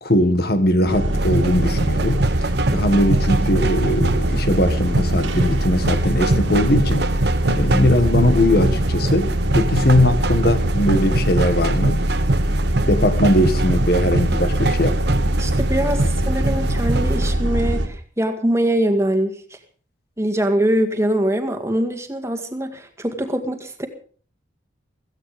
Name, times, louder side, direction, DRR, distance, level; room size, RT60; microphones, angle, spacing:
voice 1, 0.0-7.1 7.5-12.0 12.9-15.0, left 1 dB, 50° left, 1.8 m, -20 dB
sound 1, 0.9-17.9, right 1 dB, 80° right, 2.7 m, -22 dB
sound 2, 1.1-17.3, right 2 dB, 55° right, 1.1 m, -24 dB
voice 2, 15.4-19.4 20.2-23.9, right 1 dB, 15° right, 1.9 m, -22 dB
17.0 x 15.0 x 5.1 m
head